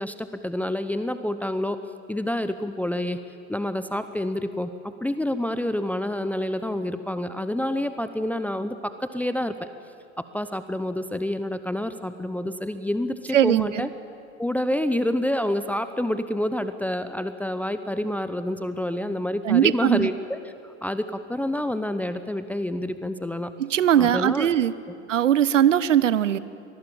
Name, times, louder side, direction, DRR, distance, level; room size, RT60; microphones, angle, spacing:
voice 1, 0.0-1.8 2.1-3.2 3.5-9.7 10.2-13.9 14.4-23.5 24.0-24.5, left 1 dB, 5° left, 11 dB, 0.8 m, -28 dB
voice 2, 13.3-13.9 19.4-20.1 23.6-24.7 25.1-26.4, right 10 dB, 75° right, 17 dB, 0.9 m, -20 dB
24.0 x 19.5 x 8.9 m, 2.6 s
figure-of-eight pair, 80°, 38 cm